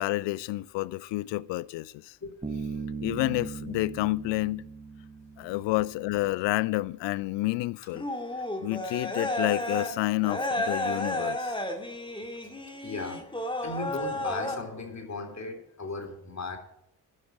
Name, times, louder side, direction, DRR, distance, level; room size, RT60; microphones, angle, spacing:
voice 1, 0.0-2.2 3.0-4.6 5.4-8.1 8.6-11.5, left 19 dB, 65° left, 0.5 m, -29 dB
Bass guitar, 2.4-6.1, right 4 dB, 10° right, 1.4 m, -38 dB
sound 1, 7.9-9.9 10.2-14.6, left 1 dB, 10° left, 2.4 m, -32 dB
voice 2, 12.8-13.2 13.6-16.6, left 3 dB, 35° left, 3.2 m, -37 dB
11.0 x 6.5 x 7.7 m
hypercardioid pair, 45°, 48 cm